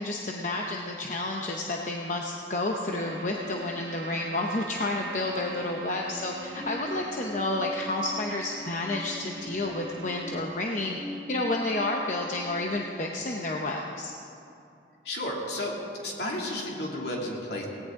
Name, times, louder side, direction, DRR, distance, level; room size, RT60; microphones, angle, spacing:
voice 1, 0.0-11.0 11.3-14.1, left 2 dB, 45° left, 0 dB, 0.8 m, -30 dB
sound 1, 2.9-10.4, right 3 dB, 65° right, 1.2 m, -44 dB
sound 2, 6.5-12.6, equal, 5° left, 0.7 m, -42 dB
voice 2, 15.0-15.7 16.0-17.6, left 1 dB, 65° left, -2 dB, 2.7 m, -32 dB
18.0 x 17.0 x 3.8 m, 2.6 s
head